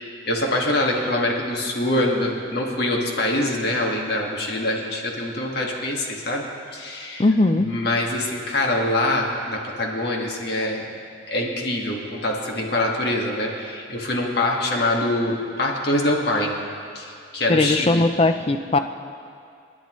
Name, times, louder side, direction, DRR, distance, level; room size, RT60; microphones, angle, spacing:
voice 1, 0.0-7.2 7.5-10.9 11.3-16.6 17.0-18.0, left 1 dB, 55° left, 0 dB, 1.7 m, -24 dB
voice 2, 7.2-7.7 17.5-18.8, left 2 dB, 30° left, 8 dB, 0.5 m, -19 dB
28.5 x 10.0 x 3.1 m, 2.4 s
head